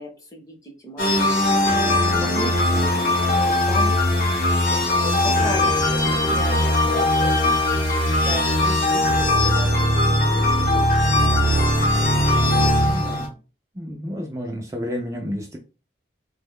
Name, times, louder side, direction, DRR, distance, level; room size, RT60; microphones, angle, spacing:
voice 1, 0.0-3.2 3.4-3.9 4.9-9.7 10.2-11.4, equal, 20° left, 2 dB, 0.7 m, -35 dB
sound 1, 1.0-13.3, left 1 dB, 50° left, 0.8 m, -19 dB
voice 2, 12.9-13.3 13.8-15.6, equal, 15° right, 0 dB, 0.3 m, -30 dB
3.0 x 2.1 x 3.5 m, 0.33 s
head